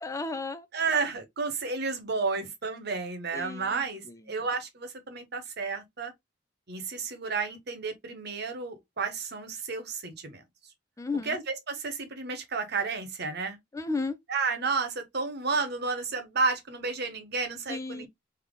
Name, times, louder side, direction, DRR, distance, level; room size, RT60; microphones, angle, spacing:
voice 1, 0.0-0.6 3.3-3.8 11.0-11.4 13.7-14.2 17.7-18.1, left 3 dB, 15° left, 0.3 m, -33 dB
voice 2, 0.7-6.1 6.7-10.4 11.2-13.6 14.3-18.1, right 4 dB, 60° right, 1.0 m, -31 dB
3.5 x 2.8 x 3.6 m
head